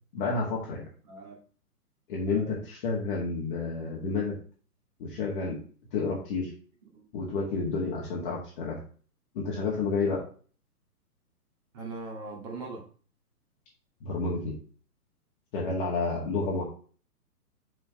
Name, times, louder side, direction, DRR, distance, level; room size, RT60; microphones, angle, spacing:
voice 1, 0.1-0.8 2.1-4.4 5.0-5.6 5.9-6.5 7.1-8.8 9.4-10.2 14.0-14.5 15.5-16.6, left 4 dB, 35° left, -3 dB, 1.8 m, -30 dB
voice 2, 1.0-1.4 2.3-2.6 6.9-7.0 11.7-12.8 16.4-16.6, right 3 dB, 25° right, -1 dB, 2.2 m, -40 dB
6.0 x 4.3 x 4.8 m, 0.41 s
figure-of-eight pair, 125°, 46 cm